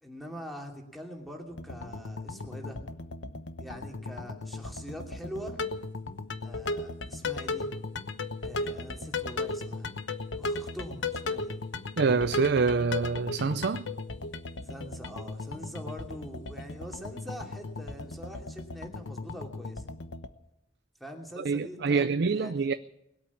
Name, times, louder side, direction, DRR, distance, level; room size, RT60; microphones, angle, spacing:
voice 1, 0.0-2.8 3.6-5.6 6.4-7.7 8.4-10.0 10.4-11.6 14.6-19.9 21.0-22.7, equal, ahead, 2.8 m, -43 dB
sound 1, 1.5-20.3, left 3 dB, 80° left, 1.0 m, -36 dB
voice 2, 12.0-13.9 21.4-22.7, right 4 dB, 65° right, 0.5 m, -26 dB
20.5 x 8.5 x 8.4 m
head